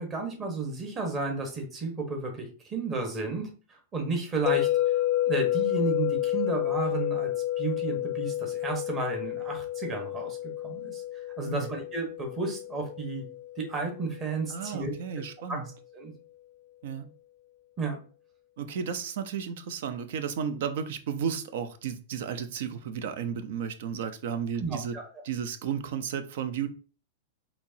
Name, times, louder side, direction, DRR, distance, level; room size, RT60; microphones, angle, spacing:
voice 1, 0.0-4.7 5.3-7.3 7.6-10.4 10.6-11.0 11.4-13.2 13.6-15.2 15.5-15.6 15.9-16.1 17.8-18.0 24.6-25.0, right 3 dB, 25° right, 2 dB, 1.2 m, -32 dB
sound 1, 4.5-14.5, left 14 dB, 35° left, 0.4 m, -30 dB
voice 2, 11.4-11.7 14.5-15.7 16.8-17.1 18.6-24.9 25.2-26.7, right 7 dB, 70° right, 11 dB, 0.6 m, -33 dB
4.4 x 2.9 x 2.7 m, 0.38 s
supercardioid pair, 135°, 0 cm